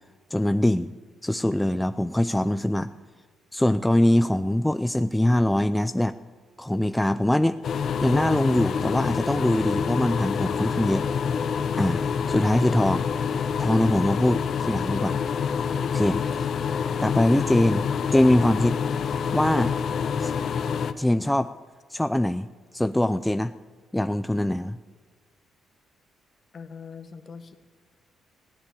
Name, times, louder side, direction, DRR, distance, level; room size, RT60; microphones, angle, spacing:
voice 1, 0.3-0.9 1.2-2.9 3.5-6.2 6.6-7.6 8.0-11.1 11.8-12.0 12.3-13.1 13.6-15.2 15.9-16.5 17.0-18.8 19.3-19.7 20.2-20.3 21.0-21.5 21.9-22.5 22.7-23.5 23.9-24.8, left 1 dB, 5° left, 11 dB, 0.4 m, -23 dB
sound 1, 7.6-20.9, left 6 dB, 60° left, 0.9 m, -27 dB
voice 2, 26.5-27.7, left 5 dB, 45° left, 8 dB, 1.6 m, -43 dB
16.5 x 10.5 x 8.5 m, 1.5 s
cardioid pair, 90°, 0 cm